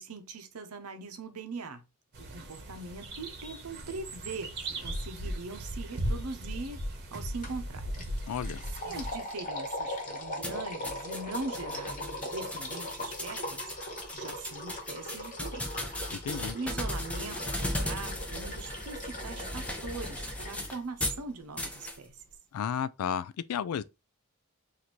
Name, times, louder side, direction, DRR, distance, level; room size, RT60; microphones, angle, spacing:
voice 1, 0.0-1.8 2.2-6.8 7.1-8.0 8.7-13.6 14.1-15.7 16.5-22.2, right 3 dB, 85° right, 0.7 m, -41 dB
sound 1, 2.1-9.2, right 1 dB, 50° right, 0.9 m, -37 dB
sound 2, 7.4-7.6 7.9-20.8, left 1 dB, 40° left, 1.2 m, -40 dB
voice 2, 8.3-8.6 16.1-16.6 22.5-23.8, left 8 dB, 75° left, 0.3 m, -33 dB
sound 3, 10.4-21.2 21.6-22.0, left 1 dB, 5° left, 0.5 m, -37 dB
3.0 x 2.6 x 4.1 m
head